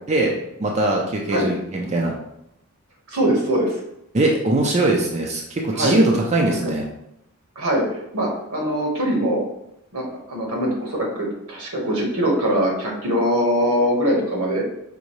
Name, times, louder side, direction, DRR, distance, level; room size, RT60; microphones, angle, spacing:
voice 1, 0.6-2.1 4.1-6.8, right 2 dB, 30° right, 0 dB, 0.5 m, -21 dB
voice 2, 3.1-3.8 5.7-6.0 6.5-6.7 7.5-9.4 9.9-14.6, equal, 85° right, -2 dB, 1.3 m, -22 dB
5.1 x 2.7 x 3.1 m, 0.82 s
head